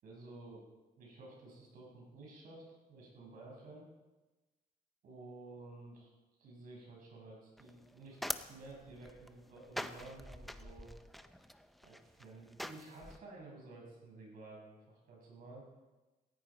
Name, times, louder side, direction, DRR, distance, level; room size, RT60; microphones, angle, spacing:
voice 1, 0.0-0.6 1.0-3.9 5.0-6.1 6.4-8.2 8.5-10.9 11.8-15.7, right 2 dB, 60° right, -1 dB, 5.7 m, -53 dB
sound 1, 7.6-13.2, equal, ahead, 0.5 m, -45 dB
18.0 x 16.0 x 4.5 m, 1.2 s
cardioid pair, 165°, 16 cm